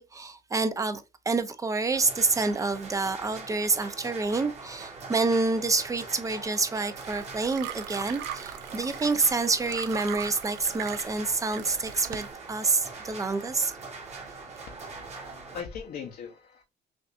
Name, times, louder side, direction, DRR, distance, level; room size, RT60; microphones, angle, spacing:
voice 1, 0.0-13.8, right 3 dB, 20° right, 0.6 m, -28 dB
sound 1, 1.9-15.6, right 4 dB, 40° right, 1.6 m, -42 dB
sound 2, 7.0-12.3, right 11 dB, 85° right, 0.5 m, -40 dB
voice 2, 14.7-16.6, left 7 dB, 60° left, 0.8 m, -41 dB
6.0 x 2.5 x 2.5 m
cardioid pair, 110°, 17 cm